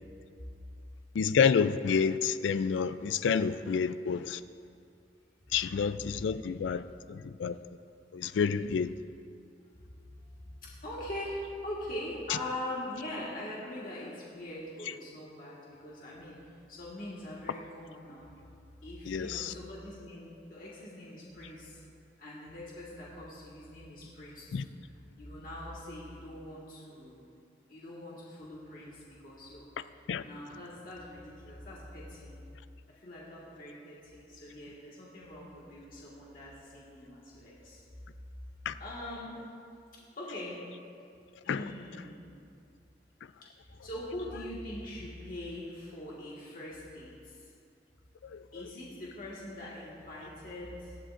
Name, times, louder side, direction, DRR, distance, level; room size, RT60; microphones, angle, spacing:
voice 1, 1.2-4.4 5.5-6.8 7.1-7.6 8.1-8.9 19.1-19.5 24.5-24.6 30.1-30.2 38.7-38.8 41.5-41.7, left 6 dB, 90° left, 13 dB, 0.4 m, -28 dB
voice 2, 5.4-6.1 8.7-8.8 9.8-18.3 18.8-21.8 22.2-24.7 25.2-27.3 27.7-29.6 29.9-32.3 32.9-37.8 38.8-39.3 40.2-40.6 41.4-42.4 43.8-47.5 48.5-51.0, left 1 dB, 50° left, -6 dB, 1.7 m, -43 dB
18.5 x 12.5 x 2.5 m, 2.5 s
head